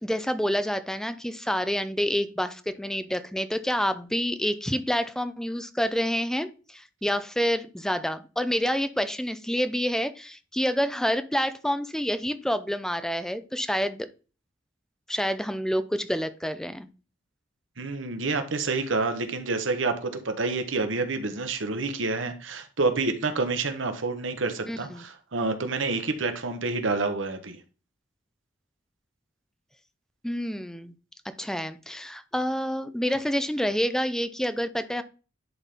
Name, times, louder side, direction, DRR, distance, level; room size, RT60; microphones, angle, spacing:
voice 1, 0.0-14.1 15.1-16.9 24.7-25.0 30.2-30.9 31.4-35.0, equal, 5° left, 0.5 m, -28 dB
voice 2, 17.8-27.6, right 3 dB, 80° right, 1.1 m, -28 dB
10.5 x 4.2 x 3.5 m
head